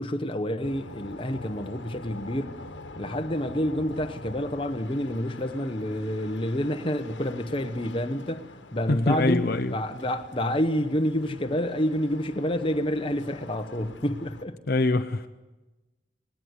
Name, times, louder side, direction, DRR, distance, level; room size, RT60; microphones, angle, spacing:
voice 1, 0.0-2.6 3.0-8.4 8.7-14.6, equal, 30° left, 1.1 m, -28 dB
sound 1, 0.6-14.4, left 2 dB, 70° left, 1.5 m, -45 dB
voice 2, 8.9-9.7 14.7-15.3, left 2 dB, 55° left, 0.8 m, -24 dB
19.5 x 18.5 x 9.5 m
head